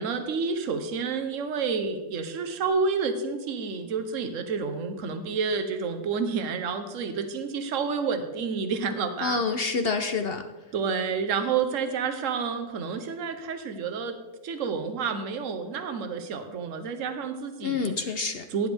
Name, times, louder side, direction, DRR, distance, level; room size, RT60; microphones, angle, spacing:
voice 1, 0.0-9.4 10.7-14.1 14.4-17.9 18.5-18.7, right 5 dB, 60° right, 8 dB, 1.3 m, -29 dB
voice 2, 9.2-10.4 17.6-18.4, left 4 dB, 55° left, 7 dB, 0.7 m, -27 dB
15.5 x 9.8 x 3.5 m, 1.2 s
omnidirectional pair, 1.6 m